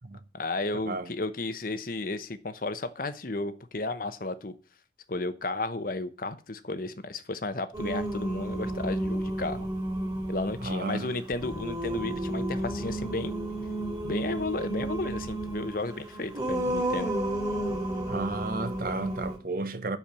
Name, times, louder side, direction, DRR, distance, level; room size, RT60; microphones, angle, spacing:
voice 1, 0.3-4.5 5.1-9.7 10.3-13.3 14.0-17.1, left 2 dB, 50° left, 0.9 m, -33 dB
Singing, 7.7-19.4, right 1 dB, 20° right, 2.3 m, -32 dB
voice 2, 10.6-11.2 18.1-20.0, right 3 dB, 50° right, 0.9 m, -33 dB
10.0 x 4.6 x 7.1 m
head